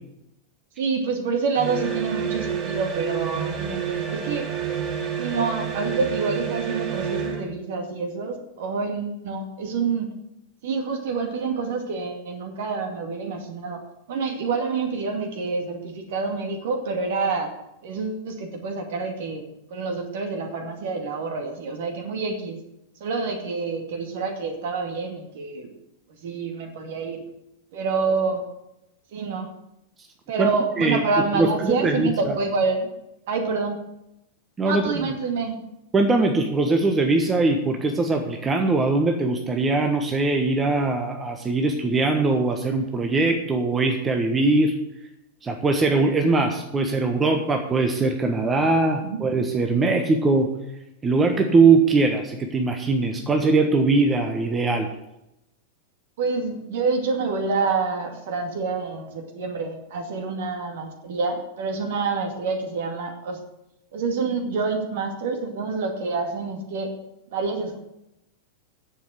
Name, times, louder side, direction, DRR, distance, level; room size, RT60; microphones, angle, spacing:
voice 1, 0.8-4.5 5.2-10.1 10.6-13.8 14.1-17.5 17.8-19.4 19.7-22.6 23.0-25.7 26.2-27.2 27.7-28.4 29.1-29.5 30.3-32.9 33.3-33.8 34.6-35.6 49.0-49.2 56.2-63.4 63.9-66.9 67.3-67.8, right 4 dB, 55° right, 4 dB, 2.3 m, -27 dB
sound 1, 1.5-7.5, right 8 dB, 40° right, 3.0 m, -29 dB
voice 2, 31.3-32.3 34.6-34.9 35.9-44.8 45.4-50.5 51.0-54.9, right 3 dB, 20° right, 4 dB, 1.3 m, -21 dB
10.0 x 7.5 x 7.7 m, 0.86 s
figure-of-eight pair, 90°, 0 cm